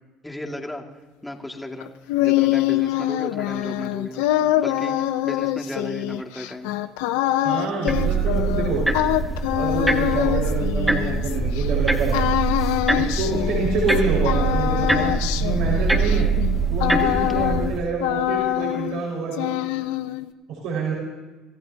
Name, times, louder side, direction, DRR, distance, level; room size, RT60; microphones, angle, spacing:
voice 1, 0.2-0.8 1.2-1.9 2.2-6.7 13.3-13.5 16.1-16.4 17.2-17.5, left 1 dB, 10° left, 2 dB, 2.4 m, -35 dB
sound 1, 1.8-11.7 12.1-14.0 14.2-17.7 18.0-19.0 19.3-20.3, left 15 dB, 80° left, 0.7 m, -24 dB
voice 2, 7.4-8.8 9.5-12.2 12.9-16.3 16.7-19.5 20.5-20.9, right 3 dB, 70° right, -4 dB, 5.5 m, -27 dB
sound 2, 7.9-17.8, right 4 dB, 10° right, 2.0 m, -23 dB
sound 3, 13.4-18.2, left 5 dB, 55° left, 2.7 m, -33 dB
26.5 x 14.5 x 2.9 m, 1.3 s
supercardioid pair, 80°, 0 cm